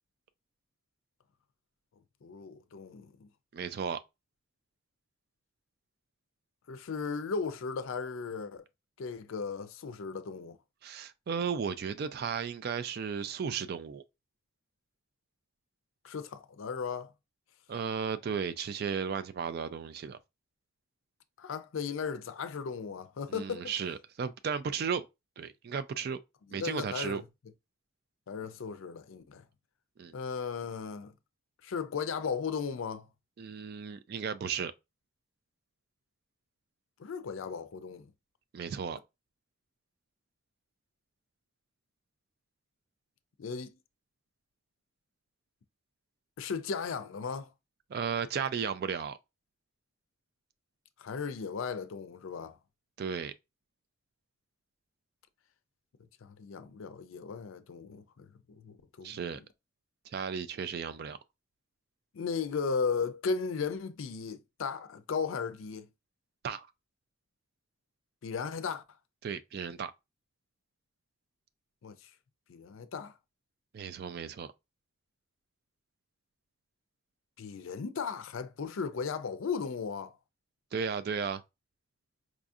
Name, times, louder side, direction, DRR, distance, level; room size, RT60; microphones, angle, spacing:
voice 1, 2.2-3.3 6.7-8.6 9.0-10.6 16.0-17.1 21.4-23.7 26.5-27.2 28.3-29.4 30.1-31.1 31.6-33.1 37.0-38.1 43.4-43.8 46.4-47.5 51.0-52.6 56.2-59.4 62.1-65.9 68.2-68.8 71.8-72.1 72.5-73.1 77.4-80.2, left 5 dB, 70° left, 0.4 m, -36 dB
voice 2, 3.5-4.0 10.8-14.0 17.7-20.2 23.3-25.1 25.4-26.2 26.5-27.2 30.0-30.1 33.4-34.7 38.5-39.0 47.9-49.2 53.0-53.3 59.0-59.4 60.1-61.2 66.4-66.7 69.2-69.9 73.7-74.5 80.7-81.4, right 6 dB, 50° right, 0.3 m, -34 dB
4.8 x 2.6 x 2.4 m
head